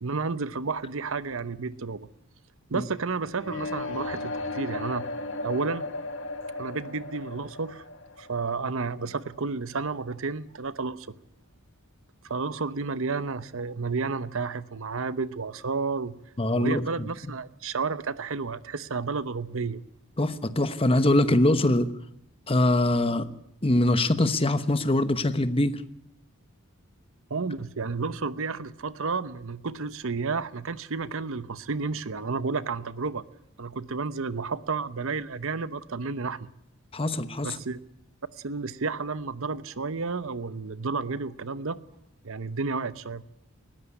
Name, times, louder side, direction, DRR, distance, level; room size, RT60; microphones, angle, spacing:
voice 1, 0.0-2.1 2.7-5.1 5.4-5.9 6.6-7.8 8.2-11.1 12.2-16.2 16.5-19.8 27.3-33.2 33.6-36.5 37.4-37.8 38.4-41.8 42.2-43.2, right 4 dB, 60° right, 0.8 m, -31 dB
sound 1, 3.4-9.3, left 2 dB, 55° left, 2.0 m, -36 dB
voice 2, 16.4-16.8 20.2-21.9 22.5-23.3 23.6-25.8 36.9-37.5, left 1 dB, 25° left, 1.1 m, -23 dB
19.5 x 15.5 x 9.7 m
head